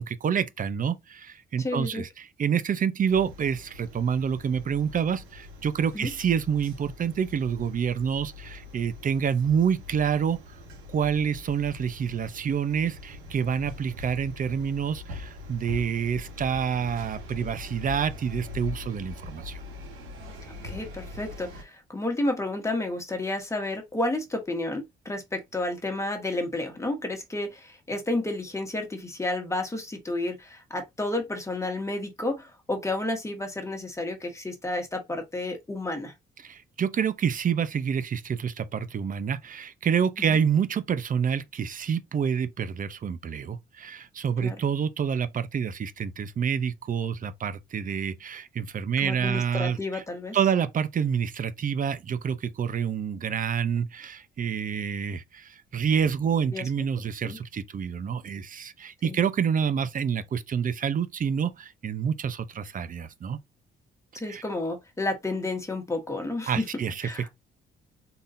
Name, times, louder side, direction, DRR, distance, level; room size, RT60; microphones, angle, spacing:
voice 1, 0.0-10.4 10.9-19.6 36.4-50.0 50.3-63.4 64.1-64.4 66.5-67.3, right 7 dB, 45° right, 0.6 m, -28 dB
voice 2, 1.6-2.0 5.9-6.1 20.6-36.1 44.4-44.5 49.0-50.4 56.5-56.7 57.2-57.4 59.0-59.2 64.1-66.6 67.0-67.3, left 2 dB, 15° left, 1.6 m, -31 dB
sound 1, 3.1-21.6, left 3 dB, 90° right, 1.9 m, -42 dB
4.0 x 3.6 x 2.6 m
cardioid pair, 90°, 20 cm